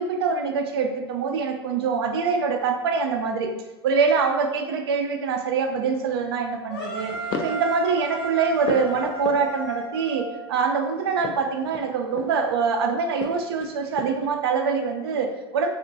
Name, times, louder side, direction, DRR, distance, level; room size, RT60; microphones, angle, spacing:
voice 1, 0.0-3.5 3.8-7.1 7.4-15.7, right 5 dB, 65° right, 4 dB, 0.5 m, -24 dB
sound 1, 5.8-6.2 7.0-7.7 8.1-9.8 11.1-12.5 13.1-14.3, left 5 dB, 35° left, 0.3 m, -36 dB
sound 2, 6.7-10.8, right 2 dB, 65° left, 1.1 m, -34 dB
3.5 x 2.2 x 2.6 m, 1.1 s
hypercardioid pair, 90°, 14 cm